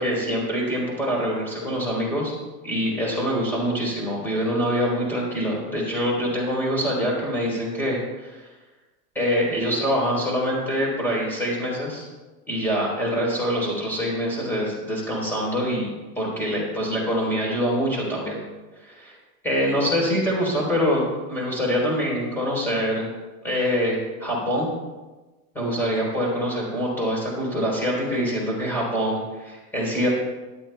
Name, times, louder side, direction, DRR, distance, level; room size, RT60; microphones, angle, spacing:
voice 1, 0.0-2.3 2.6-8.4 9.2-12.0 12.5-15.9 16.2-18.4 18.8-19.1 19.4-21.0 21.3-23.1 23.4-24.7 25.5-30.1, equal, 5° left, -4 dB, 3.7 m, -25 dB
18.0 x 11.5 x 2.3 m, 1.2 s
supercardioid pair, 165°, 44 cm